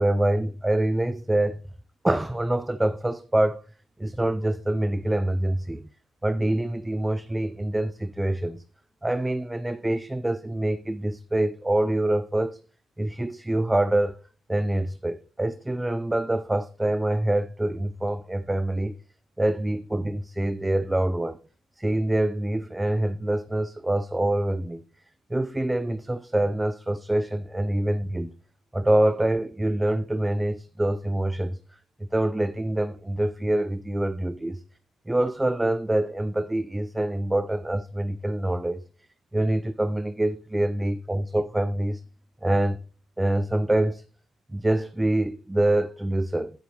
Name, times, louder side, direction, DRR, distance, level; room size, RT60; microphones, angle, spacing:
voice 1, 0.0-1.6 2.0-3.6 4.0-5.9 6.2-8.6 9.0-12.6 13.0-14.1 14.5-18.9 19.4-21.4 21.8-24.8 25.3-28.3 28.7-31.6 32.1-34.6 35.1-38.8 39.3-42.0 42.4-42.8 43.2-44.0 44.5-46.5, right 1 dB, 10° right, 0.5 m, -25 dB
11.0 x 9.6 x 3.0 m
cardioid pair, 90°, 0 cm